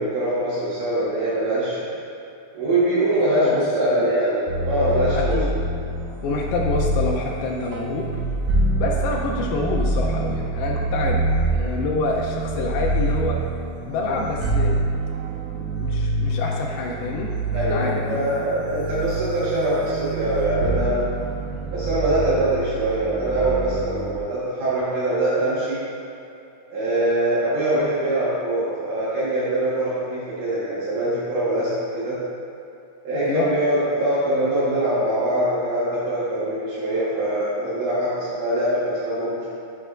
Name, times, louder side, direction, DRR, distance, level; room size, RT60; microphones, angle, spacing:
voice 1, 0.0-1.9 2.5-5.4 17.5-21.0 21.7-25.9 26.7-32.2 33.0-39.5, right 1 dB, 65° right, -10 dB, 3.0 m, -23 dB
voice 2, 3.4-4.1 5.2-5.5 6.2-8.1 8.8-11.2 11.5-13.4 13.9-14.7 15.5-18.5 33.1-33.5, left 3 dB, 90° left, -1 dB, 2.1 m, -27 dB
sound 1, 4.5-24.2, right 2 dB, 85° right, 2.9 m, -26 dB
13.0 x 5.4 x 2.5 m, 2.7 s
omnidirectional pair, 5.1 m